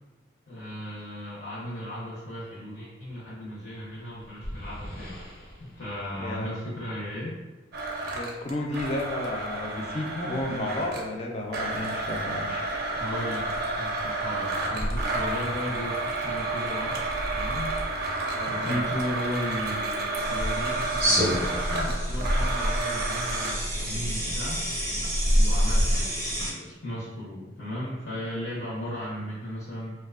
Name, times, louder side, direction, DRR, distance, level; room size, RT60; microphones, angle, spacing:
voice 1, 0.5-5.2 5.6-7.4 12.9-13.4 13.7-17.0 17.3-17.8 18.5-24.6 25.3-26.2 26.5-29.9, left 1 dB, 70° left, -7 dB, 0.7 m, -36 dB
sound 1, 3.9-7.3, equal, 90° left, 1.1 m, -43 dB
voice 2, 6.2-6.5 8.1-12.7 18.3-18.8, left 1 dB, 35° left, 0 dB, 0.4 m, -32 dB
Domestic sounds home sounds, 7.7-11.1 11.5-23.5, right 2 dB, 55° right, 0.4 m, -30 dB
sound 2, 20.2-26.5, equal, 15° right, 0.6 m, -26 dB
2.6 x 2.2 x 2.3 m, 1.1 s
head